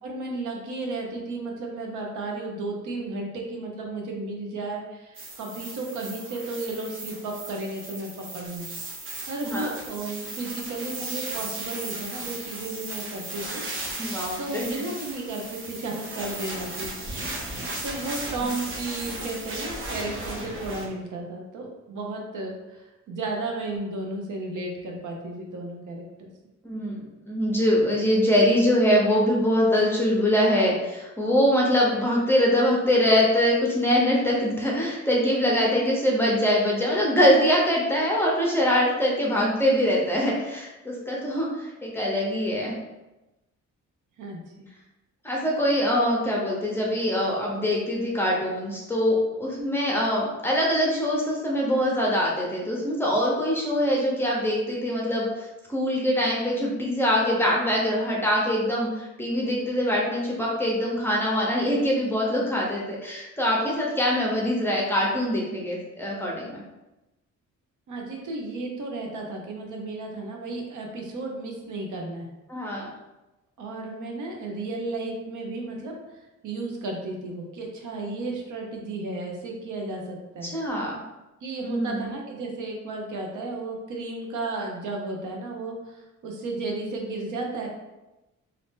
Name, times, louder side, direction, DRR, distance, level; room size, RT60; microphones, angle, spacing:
voice 1, 0.0-8.7 9.3-13.6 14.4-17.1 17.8-26.3 44.2-44.7 67.9-72.3 73.6-75.9 76.4-80.5 81.4-87.7, right 2 dB, 90° right, 0 dB, 0.7 m, -33 dB
sound 1, 5.1-20.9, right 2 dB, 45° right, 0.7 m, -36 dB
voice 2, 9.4-9.7 14.0-14.8 26.6-27.0 27.3-42.7 45.2-55.3 55.7-66.6 72.5-72.9 80.4-81.0 81.6-82.0, equal, 10° left, -3 dB, 0.6 m, -23 dB
2.7 x 2.6 x 3.5 m, 1.0 s
wide cardioid pair, 150°, 30 cm